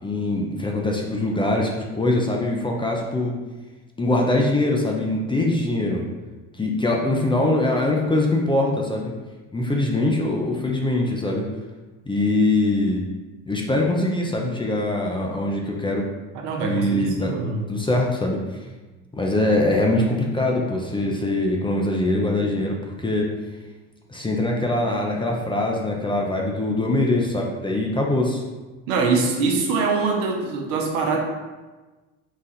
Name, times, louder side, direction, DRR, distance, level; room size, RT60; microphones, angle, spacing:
voice 1, 0.0-3.4 4.0-6.1 6.6-9.1 9.5-11.4 12.1-13.0 13.5-16.1 16.6-17.3 17.7-18.4 19.1-23.3 24.1-28.4, left 2 dB, 15° left, -1 dB, 0.5 m, -22 dB
voice 2, 16.4-17.7 28.9-31.2, right 4 dB, 75° right, 1 dB, 0.9 m, -23 dB
4.0 x 2.4 x 4.1 m, 1.2 s
hypercardioid pair, 80°, 40 cm